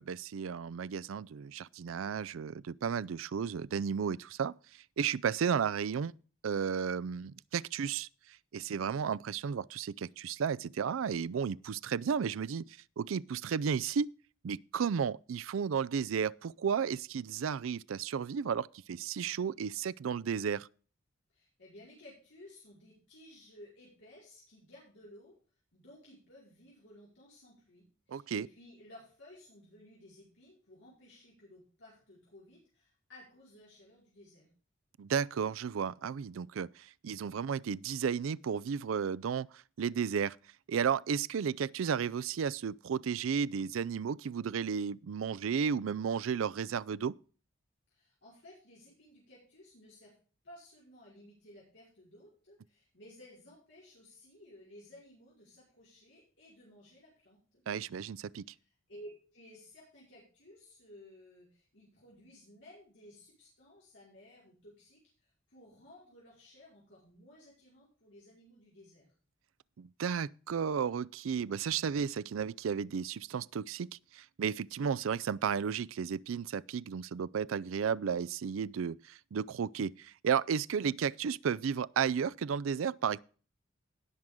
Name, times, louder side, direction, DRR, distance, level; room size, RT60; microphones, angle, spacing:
voice 1, 0.0-4.5 5.0-6.1 6.4-8.1 8.5-14.1 14.4-20.7 28.1-28.5 35.0-40.4 40.7-47.1 57.7-58.4 69.8-83.2, right 7 dB, 85° right, 0.4 m, -33 dB
voice 2, 21.3-25.3 25.7-34.5 47.9-50.1 50.4-57.6 58.5-69.1, left 1 dB, 65° left, 5.0 m, -56 dB
18.0 x 6.3 x 3.6 m
head